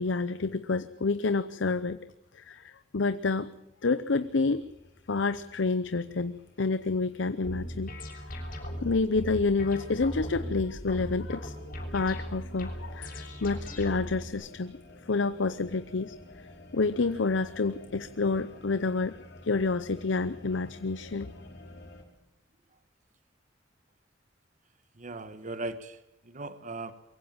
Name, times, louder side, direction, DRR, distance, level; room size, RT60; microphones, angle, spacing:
voice 1, 0.0-2.0 2.3-3.5 3.8-4.6 5.1-7.9 8.8-11.5 11.9-14.8 15.1-16.1 16.7-19.2 19.4-21.3, left 3 dB, 85° left, 12 dB, 0.7 m, -28 dB
sound 1, 4.1-22.0, left 1 dB, 65° left, 4.5 m, -52 dB
sound 2, 7.4-14.3, equal, 50° left, 6.6 m, -38 dB
voice 2, 25.0-26.9, right 2 dB, 45° right, 12 dB, 1.3 m, -38 dB
23.0 x 16.0 x 9.0 m, 0.89 s
head